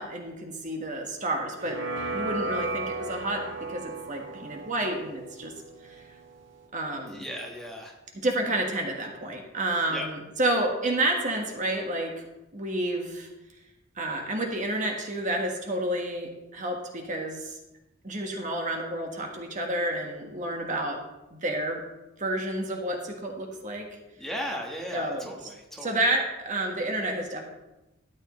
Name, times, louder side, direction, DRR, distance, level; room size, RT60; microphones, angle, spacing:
voice 1, 0.0-1.8 2.1-3.4 3.7-5.5 5.8-6.0 6.7-7.2 8.2-12.1 12.5-13.3 14.0-17.6 18.0-21.0 21.3-21.8 22.2-23.8 24.9-25.5 25.8-27.4, right 1 dB, 40° right, 2 dB, 1.5 m, -30 dB
sound 1, 1.6-6.6, right 2 dB, 65° right, 1.8 m, -35 dB
voice 2, 7.1-7.9 9.9-10.1 10.5-10.6 24.2-26.0, equal, ahead, -1 dB, 1.4 m, -36 dB
13.0 x 9.6 x 3.2 m, 0.98 s
head